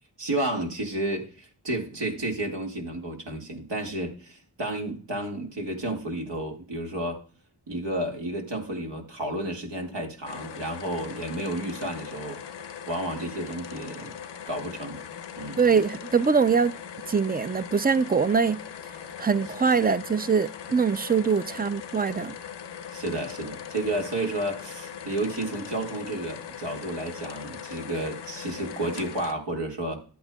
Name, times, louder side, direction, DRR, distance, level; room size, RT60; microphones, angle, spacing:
voice 1, 0.2-7.2 7.7-12.4 12.9-14.2 14.5-15.0 15.4-15.7 22.9-30.0, right 1 dB, 80° right, 1.9 m, -31 dB
sound 1, 10.2-29.3, left 8 dB, 85° left, 0.7 m, -40 dB
voice 2, 15.6-16.7 17.1-18.6 19.2-22.3, right 5 dB, 25° right, 0.4 m, -23 dB
12.5 x 8.5 x 2.3 m
cardioid pair, 45°, 41 cm